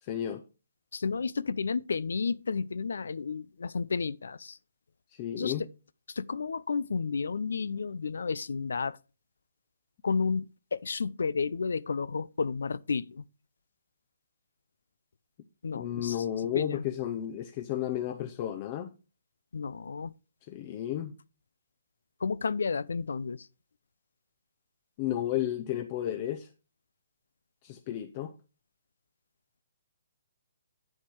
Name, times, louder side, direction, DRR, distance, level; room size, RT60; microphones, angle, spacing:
voice 1, 0.0-0.4 5.1-5.6 15.7-18.9 20.5-21.1 25.0-26.5 27.6-28.3, left 11 dB, 35° left, 0.7 m, -32 dB
voice 2, 0.9-4.6 5.4-5.7 6.1-9.0 10.0-13.2 15.6-16.2 16.5-16.8 19.5-20.1 22.2-23.5, left 5 dB, 80° left, 0.5 m, -32 dB
7.8 x 7.2 x 4.6 m
hypercardioid pair, 145°, 0 cm